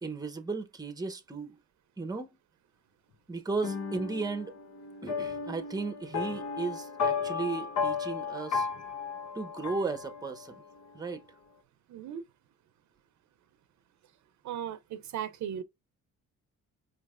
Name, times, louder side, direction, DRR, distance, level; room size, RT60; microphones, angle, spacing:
voice 1, 0.0-1.6 2.0-2.3 3.3-4.5 5.0-8.7 9.3-10.6 10.9-11.2, right 4 dB, 15° right, 0.8 m, -35 dB
sound 1, 3.6-10.6, left 5 dB, 65° left, 1.1 m, -34 dB
voice 2, 11.9-12.2 14.4-15.6, right 9 dB, 70° right, 0.7 m, -37 dB
5.1 x 3.2 x 2.4 m
cardioid pair, 90°, 30 cm